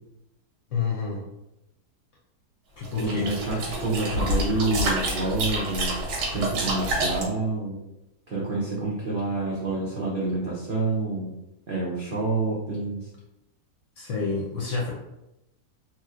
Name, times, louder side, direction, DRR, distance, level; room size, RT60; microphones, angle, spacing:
voice 1, 0.7-1.2 2.8-3.3 14.0-14.9, left 5 dB, 60° left, -3 dB, 0.8 m, -28 dB
sound 1, 2.8-7.2, right 1 dB, 90° right, 1.4 m, -28 dB
voice 2, 3.0-6.0 6.3-7.8 8.3-11.3 11.7-13.1, right 2 dB, 75° right, -5 dB, 0.4 m, -28 dB
3.0 x 3.0 x 2.4 m, 0.90 s
omnidirectional pair, 1.8 m